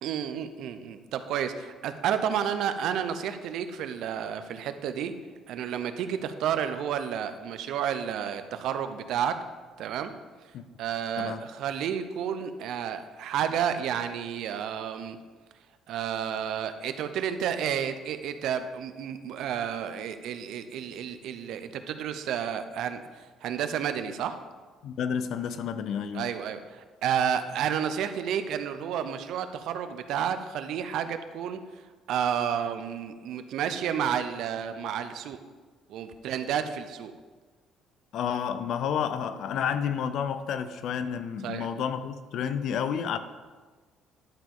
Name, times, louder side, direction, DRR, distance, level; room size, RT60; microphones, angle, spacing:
voice 1, 0.0-5.2 5.5-9.4 9.8-10.1 10.8-15.2 15.9-23.0 23.4-24.4 26.1-31.6 32.1-35.4 35.9-37.1 41.4-41.7, right 8 dB, 70° right, 0.6 m, -31 dB
voice 2, 24.8-26.3 38.1-43.2, left 7 dB, 60° left, 0.5 m, -30 dB
11.0 x 7.2 x 3.8 m
cardioid pair, 155°, 0 cm